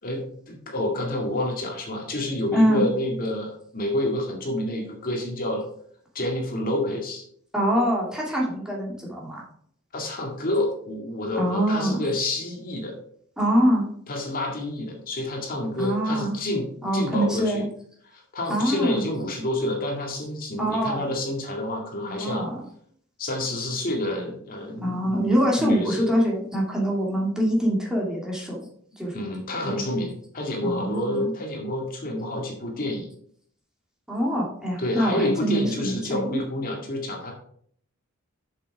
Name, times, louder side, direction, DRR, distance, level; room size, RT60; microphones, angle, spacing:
voice 1, 0.0-5.6 6.1-7.2 9.9-13.0 14.1-17.6 18.0-22.5 23.2-26.1 29.1-33.1 34.8-37.3, left 1 dB, 45° left, 0 dB, 2.1 m, -28 dB
voice 2, 2.5-2.8 7.5-9.4 11.4-12.0 13.4-13.9 15.8-16.3 16.8-17.7 18.5-19.0 20.6-21.0 22.0-22.6 24.8-28.6 29.0-29.2 29.6-29.8 30.6-31.3 34.1-36.4, equal, 5° right, -3 dB, 2.6 m, -24 dB
7.7 x 6.8 x 4.8 m, 0.62 s
head